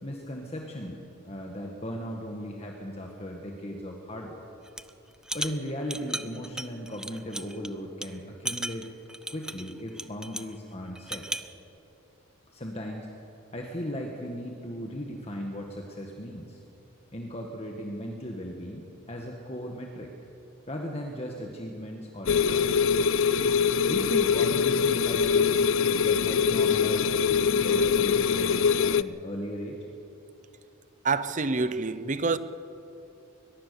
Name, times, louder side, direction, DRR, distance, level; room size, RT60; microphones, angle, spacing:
voice 1, 0.0-4.4 5.3-8.9 9.3-11.3 12.5-13.1 13.5-16.6 17.1-20.1 20.7-22.7 23.9-25.7 26.0-29.8, equal, 30° left, 1.6 m, -37 dB
sound 1, 4.7-4.9 5.2-7.7 8.0-8.1 8.5-10.5 11.0-11.5, right 1 dB, 5° right, 0.4 m, -35 dB
sound 2, 22.3-29.0, left 6 dB, 60° left, 0.5 m, -23 dB
voice 2, 31.0-32.4, right 4 dB, 35° right, 0.7 m, -27 dB
21.5 x 21.0 x 6.9 m
head